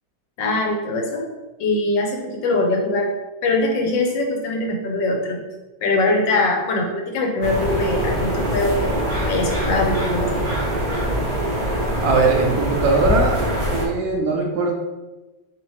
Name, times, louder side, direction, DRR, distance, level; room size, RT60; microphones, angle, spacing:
voice 1, 0.4-1.2 1.6-3.1 3.4-5.4 5.8-10.4, left 2 dB, 70° left, 1 dB, 1.4 m, -22 dB
sound 1, 7.4-13.9, equal, 40° right, 0.7 m, -23 dB
voice 2, 12.0-13.4 13.7-14.7, right 3 dB, 75° right, 0 dB, 0.8 m, -20 dB
4.1 x 3.3 x 3.1 m, 1.1 s
omnidirectional pair, 2.1 m